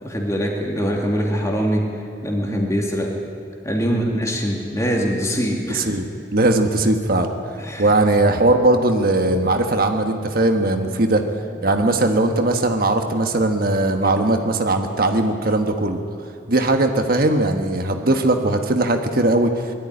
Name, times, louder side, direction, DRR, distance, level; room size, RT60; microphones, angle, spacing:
voice 1, 0.0-1.9 2.2-3.2 3.6-5.9 7.6-7.9, equal, 20° left, 0 dB, 2.8 m, -23 dB
voice 2, 5.7-6.0 6.3-7.3 7.8-11.2 11.6-16.0 16.5-19.5, right 2 dB, 55° right, 5 dB, 1.4 m, -19 dB
21.0 x 13.0 x 9.8 m, 2.4 s
head